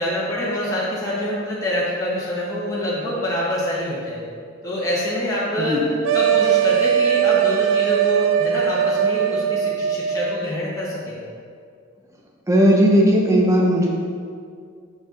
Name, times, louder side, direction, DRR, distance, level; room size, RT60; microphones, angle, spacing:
voice 1, 0.0-4.2 4.6-5.9 6.1-11.2, equal, 15° left, -8 dB, 1.2 m, -25 dB
sound 1, 6.0-10.5, right 9 dB, 70° right, 0.4 m, -20 dB
voice 2, 12.5-13.9, equal, 15° right, -1 dB, 0.7 m, -16 dB
6.4 x 6.1 x 3.9 m, 2.2 s
head